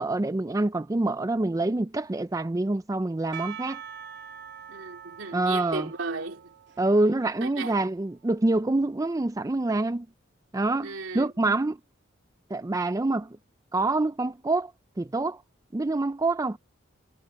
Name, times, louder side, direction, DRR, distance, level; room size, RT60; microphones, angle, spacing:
voice 1, 0.0-3.8 5.3-5.9 6.8-10.1 10.5-11.8 12.5-13.4 13.7-14.7 15.0-15.4 15.7-16.6, right 2 dB, 15° right, 0.4 m, -26 dB
Percussion / Church bell, 3.3-8.3, right 9 dB, 60° right, 3.5 m, -45 dB
voice 2, 4.7-6.5 7.4-7.8 10.8-11.3, right 3 dB, 75° right, 2.8 m, -35 dB
head